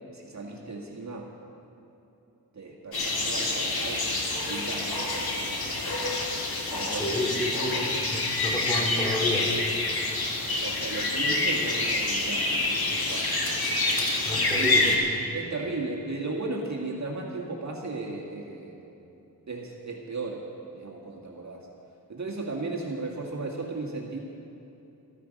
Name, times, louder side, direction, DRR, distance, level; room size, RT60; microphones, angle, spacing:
voice 1, 0.1-1.3 2.5-4.1 4.4-6.2 6.7-7.1 7.5-7.6 10.6-13.8 14.6-14.7 15.3-18.8 19.5-20.5 20.7-21.7 22.1-24.2, right 3 dB, 50° right, -2 dB, 1.9 m, -36 dB
sound 1, 2.9-15.0, left 2 dB, 80° left, 2.0 m, -27 dB
voice 2, 6.9-7.9 8.1-9.6 14.2-15.0, left 1 dB, 10° left, -2 dB, 3.0 m, -30 dB
14.5 x 14.0 x 5.2 m, 3.0 s
wide cardioid pair, 95°, 36 cm